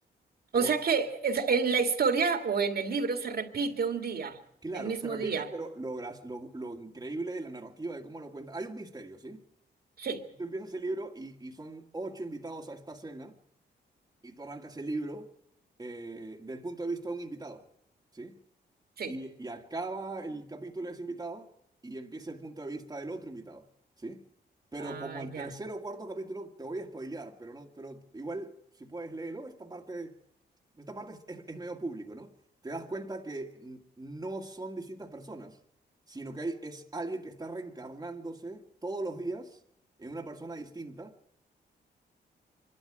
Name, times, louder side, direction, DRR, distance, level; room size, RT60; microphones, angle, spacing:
voice 1, 0.5-4.4 4.7-5.5 10.0-10.2 19.0-19.2 24.8-25.5, right 5 dB, 60° right, 2.3 m, -29 dB
voice 2, 4.6-9.4 10.4-13.4 14.2-15.3 15.8-17.7 18.1-18.4 19.1-21.5 21.8-23.7 24.0-24.3 24.7-30.2 30.8-32.4 32.6-35.6 36.1-39.6 40.0-41.2, right 2 dB, 20° right, 1.9 m, -39 dB
24.5 x 12.5 x 10.0 m
cardioid pair, 85°, 18 cm